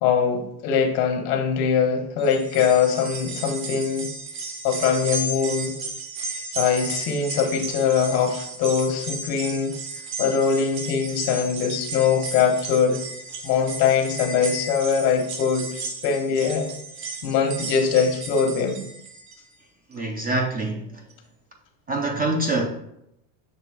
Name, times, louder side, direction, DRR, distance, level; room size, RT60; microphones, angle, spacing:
voice 1, 0.0-4.1 4.6-5.7 6.2-9.7 10.2-13.0 13.4-16.7 17.2-18.8, left 6 dB, 90° left, 1.2 m, -22 dB
sound 1, 2.2-19.5 19.9-20.0 21.1-21.2, right 3 dB, 50° right, 1.2 m, -34 dB
voice 2, 19.9-21.0 21.9-22.7, right 2 dB, 20° right, 0.4 m, -25 dB
6.8 x 2.9 x 4.7 m
cardioid pair, 140°, 47 cm